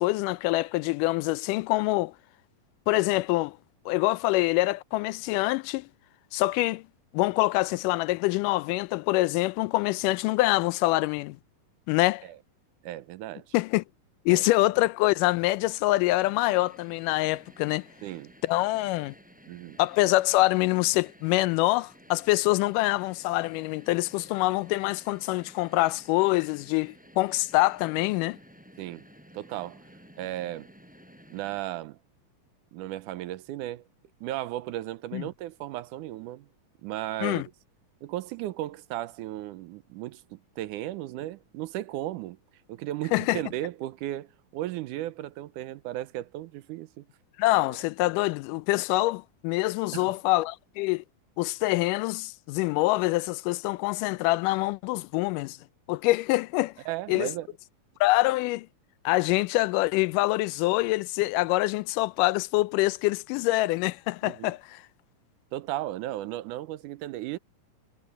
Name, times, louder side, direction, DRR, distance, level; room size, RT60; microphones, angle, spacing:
voice 1, 0.0-2.1 2.9-3.6 3.9-5.9 6.3-6.8 7.1-11.4 11.9-12.3 13.5-13.8 14.3-17.9 18.4-19.2 19.8-28.4 35.1-35.2 37.2-37.5 43.1-43.4 47.4-51.0 51.4-55.6 55.9-56.8 57.1-57.3 58.0-58.7 59.1-64.8, left 20 dB, 85° left, 2.1 m, -25 dB
voice 2, 12.8-13.5 14.3-14.5 18.0-18.3 19.5-19.8 28.8-29.1 29.3-29.8 30.2-30.7 31.3-32.0 32.7-33.8 34.2-36.5 36.8-37.4 38.0-42.4 42.7-47.1 49.9-50.1 56.9-57.5 64.2-64.5 65.5-67.4, right 15 dB, 80° right, 2.2 m, -35 dB
sound 1, 16.3-31.6, equal, ahead, 6.8 m, -54 dB
omnidirectional pair, 3.7 m